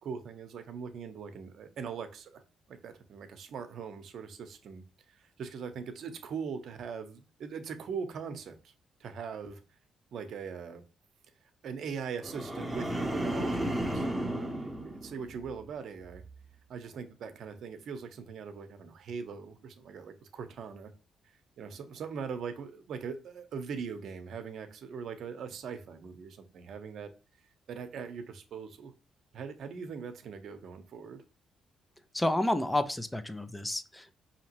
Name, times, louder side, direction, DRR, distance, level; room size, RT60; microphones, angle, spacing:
voice 1, 0.0-2.4 2.7-4.8 5.1-8.7 9.0-9.6 10.1-10.8 11.6-16.2 16.7-20.9 21.6-27.1 27.7-28.9 29.3-31.2, right 6 dB, 65° right, 7 dB, 0.7 m, -41 dB
sound 1, 12.2-15.6 16.0-16.4, right 1 dB, 5° right, 0.9 m, -34 dB
voice 2, 32.1-34.1, left 1 dB, 10° left, 10 dB, 0.5 m, -30 dB
5.0 x 2.8 x 2.9 m, 0.34 s
cardioid pair, 90°, 0 cm